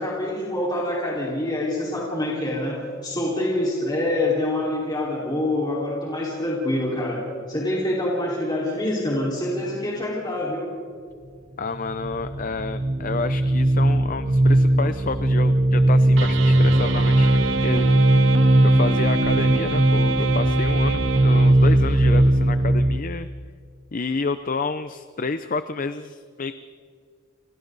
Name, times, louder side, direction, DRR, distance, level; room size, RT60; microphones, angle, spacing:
voice 1, 0.0-2.8 3.0-7.2 7.5-10.7, left 1 dB, 20° left, -6 dB, 4.6 m, -25 dB
voice 2, 11.6-18.2 18.6-23.3 23.9-26.5, left 4 dB, 40° left, 11 dB, 0.6 m, -30 dB
sound 1, 11.7-23.0, right 1 dB, 30° right, 0.7 m, -19 dB
sound 2, 16.2-22.0, right 3 dB, 65° right, 1.3 m, -28 dB
30.0 x 29.5 x 4.1 m, 2.1 s
head